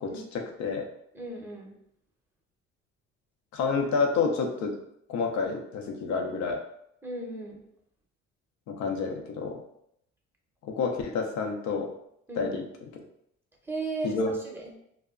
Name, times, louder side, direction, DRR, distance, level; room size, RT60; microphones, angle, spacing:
voice 1, 0.0-0.8 3.5-4.7 5.1-6.6 8.7-9.6 10.6-11.9 12.4-12.6 12.9-13.0 14.0-14.3, left 4 dB, 70° left, 3 dB, 0.6 m, -29 dB
voice 2, 1.1-1.7 7.0-7.6 12.3-12.5 13.6-14.7, right 3 dB, 5° right, 0 dB, 0.6 m, -36 dB
2.2 x 2.0 x 3.6 m, 0.75 s
cardioid pair, 90°, 29 cm